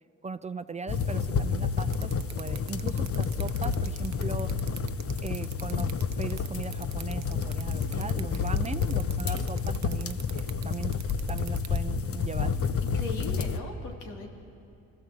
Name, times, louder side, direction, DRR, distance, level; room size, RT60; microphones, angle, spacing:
voice 1, 0.2-2.1 2.4-4.5 5.2-5.9 6.2-11.0 11.3-12.6, right 4 dB, 25° right, 13 dB, 0.5 m, -38 dB
sound 1, 0.9-13.6, left 5 dB, 50° left, 1.0 m, -29 dB
sound 2, 1.9-11.8, right 12 dB, 65° right, 0.7 m, -43 dB
voice 2, 12.9-14.3, left 2 dB, 75° left, 1 dB, 3.1 m, -39 dB
24.0 x 14.5 x 7.8 m, 2.5 s
cardioid pair, 90°, 30 cm